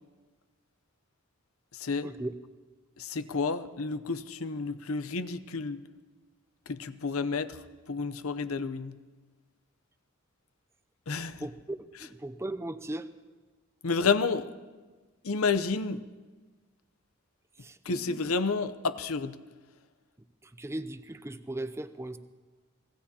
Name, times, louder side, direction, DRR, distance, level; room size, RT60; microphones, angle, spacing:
voice 1, 1.7-2.1 3.0-5.8 6.7-7.6 7.9-9.0 11.1-11.5 13.8-14.5 15.2-16.0 17.8-19.4, left 4 dB, 85° left, 12 dB, 0.7 m, -30 dB
voice 2, 11.4-11.8 12.2-13.1 17.6-18.2 20.6-22.2, right 1 dB, 15° right, 9 dB, 0.5 m, -37 dB
25.5 x 18.0 x 2.9 m, 1.3 s
head